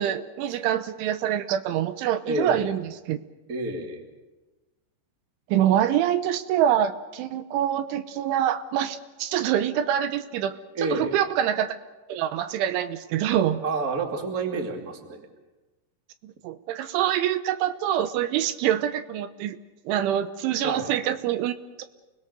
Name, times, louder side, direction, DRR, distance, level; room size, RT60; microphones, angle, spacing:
voice 1, 0.0-2.8 3.1-3.2 5.5-11.7 12.1-13.6 16.2-19.6 19.9-21.8, right 11 dB, 80° right, 11 dB, 3.3 m, -25 dB
voice 2, 2.2-2.7 3.5-4.1 10.7-11.2 13.6-15.3 20.6-20.9, right 3 dB, 30° right, 3 dB, 1.9 m, -29 dB
29.5 x 21.0 x 6.7 m, 1.2 s
omnidirectional pair, 5.6 m